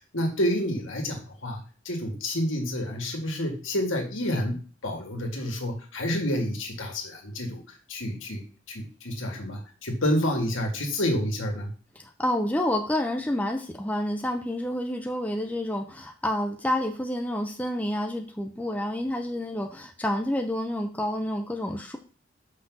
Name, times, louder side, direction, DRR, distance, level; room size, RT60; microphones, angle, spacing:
voice 1, 0.1-1.6 1.9-7.6 7.9-11.7, equal, 75° left, 2 dB, 2.0 m, -29 dB
voice 2, 12.0-22.0, left 1 dB, 10° left, 3 dB, 0.6 m, -29 dB
6.0 x 4.0 x 6.1 m, 0.38 s
head